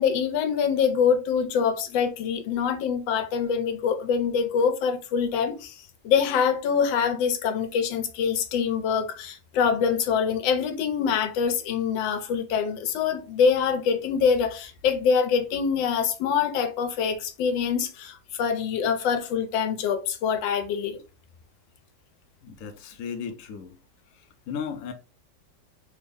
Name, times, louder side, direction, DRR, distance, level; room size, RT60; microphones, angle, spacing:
voice 1, 0.0-5.8 6.0-21.0, left 6 dB, 90° left, 1.3 m, -25 dB
voice 2, 22.4-23.8 24.5-24.9, left 7 dB, 70° left, 0.8 m, -35 dB
3.5 x 2.0 x 3.5 m
omnidirectional pair, 2.0 m